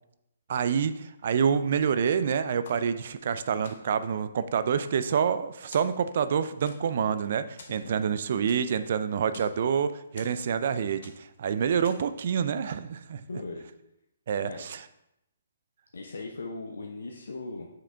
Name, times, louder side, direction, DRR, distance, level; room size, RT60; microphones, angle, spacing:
voice 1, 0.5-13.2 14.3-14.8, right 7 dB, 55° right, 12 dB, 0.4 m, -27 dB
sound 1, 2.6-3.3 3.6-4.1 4.6-5.4 5.7-6.3 6.7-7.1 7.6-8.9 9.1-9.6 10.2-10.7 11.0-11.4 11.8-12.2, left 4 dB, 60° left, 1.0 m, -50 dB
voice 2, 13.3-13.6 14.4-14.7 15.9-17.7, left 3 dB, 80° left, 1 dB, 0.7 m, -38 dB
5.8 x 4.8 x 3.4 m, 0.83 s
hypercardioid pair, 150°, 0 cm